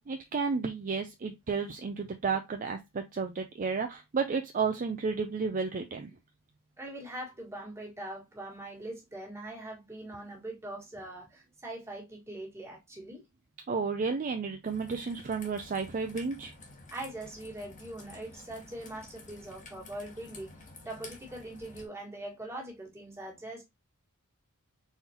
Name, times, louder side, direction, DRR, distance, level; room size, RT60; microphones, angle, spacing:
voice 1, 0.1-6.1 13.7-16.5, right 5 dB, 35° right, 0.4 m, -32 dB
voice 2, 6.8-13.2 16.9-23.6, right 1 dB, 10° right, 1.7 m, -42 dB
Raindrop / Trickle dribble, 14.6-21.9, left 3 dB, 35° left, 1.1 m, -51 dB
4.3 x 3.8 x 2.8 m
head